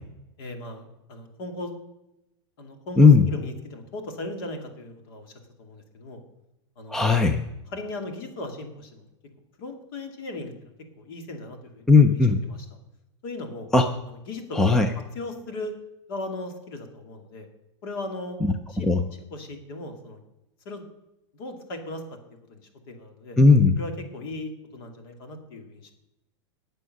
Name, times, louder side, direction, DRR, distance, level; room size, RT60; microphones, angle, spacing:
voice 1, 0.4-1.8 2.6-6.2 6.8-7.0 7.7-9.0 9.6-10.7 11.0-12.2 12.5-12.7 13.2-13.7 14.1-14.6 15.1-15.7 16.1-17.5 17.8-18.9 19.3-20.2 20.7-20.8 21.3-22.0 22.5-22.6 22.9-23.4 23.8-25.9, left 2 dB, 50° left, 5 dB, 2.3 m, -37 dB
voice 2, 3.0-3.3 6.9-7.4 11.9-12.4 13.7-13.9 14.5-14.9 18.4-18.5 18.8-19.0 23.4-23.8, left 4 dB, 5° left, 7 dB, 0.4 m, -16 dB
19.0 x 6.8 x 6.4 m, 0.91 s
supercardioid pair, 170°, 16 cm